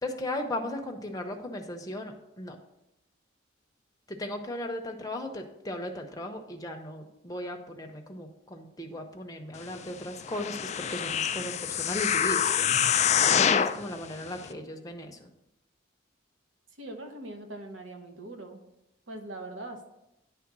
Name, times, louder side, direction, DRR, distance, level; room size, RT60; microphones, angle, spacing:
voice 1, 0.0-2.6 4.1-12.7 13.3-15.3, left 1 dB, 20° left, 3 dB, 0.7 m, -36 dB
sound 1, 10.3-13.8 14.4-14.5, left 8 dB, 35° left, 0.3 m, -25 dB
voice 2, 16.8-18.6 19.1-19.9, right 2 dB, 70° right, 5 dB, 1.0 m, -41 dB
9.6 x 3.4 x 6.0 m, 0.88 s
head